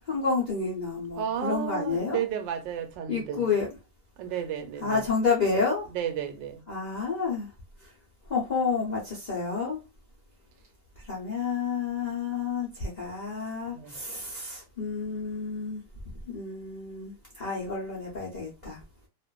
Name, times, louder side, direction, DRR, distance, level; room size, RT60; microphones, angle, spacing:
voice 1, 0.1-2.2 3.1-3.7 4.8-5.9 6.7-7.5 7.8-7.9 8.3-9.8 11.0-15.8 16.3-18.8, left 4 dB, 70° left, 0.4 m, -30 dB
voice 2, 1.2-3.5 4.2-5.0 5.9-6.6 13.7-14.0, right 9 dB, 85° right, 1.3 m, -33 dB
2.6 x 2.4 x 2.2 m
omnidirectional pair, 1.9 m